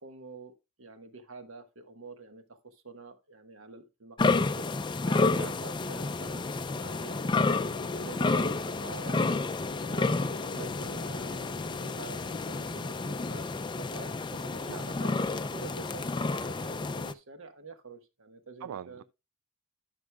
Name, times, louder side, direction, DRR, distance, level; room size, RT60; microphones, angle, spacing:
voice 1, 0.0-4.8 5.0-5.3 5.6-7.2 7.9-9.3 9.9-11.5 11.8-19.0, right 3 dB, 65° right, 1.3 m, -47 dB
sound 1, 4.2-17.1, left 3 dB, 20° left, 0.4 m, -30 dB
sound 2, 6.6-14.0, left 3 dB, 80° left, 0.7 m, -47 dB
voice 2, 7.4-7.7 9.9-10.1 14.7-15.0 16.3-16.6 18.6-19.0, right 9 dB, 85° right, 0.3 m, -43 dB
13.5 x 6.3 x 2.2 m
head